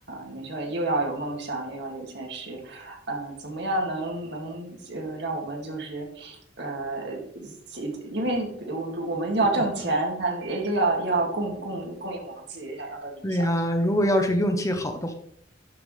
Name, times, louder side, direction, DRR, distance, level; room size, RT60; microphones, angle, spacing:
voice 1, 0.1-13.5, right 2 dB, 65° right, 1 dB, 2.3 m, -29 dB
voice 2, 13.2-15.1, equal, 15° left, 6 dB, 0.8 m, -24 dB
12.0 x 6.8 x 3.3 m, 0.69 s
head